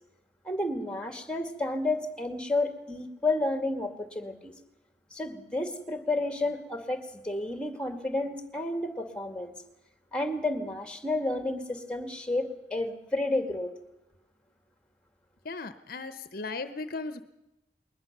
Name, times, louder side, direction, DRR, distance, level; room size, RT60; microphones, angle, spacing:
voice 1, 0.4-4.5 5.1-9.5 10.1-13.7, left 2 dB, 5° left, 7 dB, 2.2 m, -31 dB
voice 2, 15.4-17.2, left 3 dB, 55° left, 11 dB, 0.9 m, -37 dB
21.0 x 20.0 x 6.8 m, 0.95 s
head